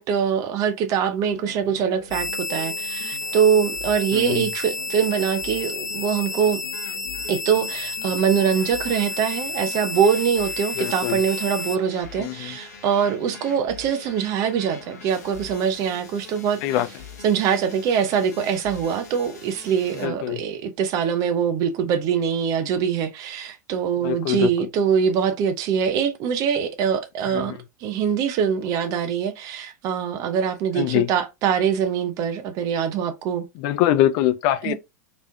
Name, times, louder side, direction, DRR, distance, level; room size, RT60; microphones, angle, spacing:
voice 1, 0.0-6.6 7.3-16.8 17.2-33.5 34.6-34.7, right 7 dB, 40° right, 0.8 m, -23 dB
sound 1, 1.2-20.1, left 4 dB, 65° left, 1.7 m, -43 dB
sound 2, 2.1-11.8, left 3 dB, 85° left, 0.6 m, -31 dB
voice 2, 4.1-4.5 10.8-11.2 12.2-12.6 16.6-16.9 20.0-20.4 24.0-24.7 27.3-27.6 30.7-31.1 33.6-34.7, left 13 dB, 40° left, 0.6 m, -23 dB
4.0 x 3.5 x 2.7 m
figure-of-eight pair, 90°, 9 cm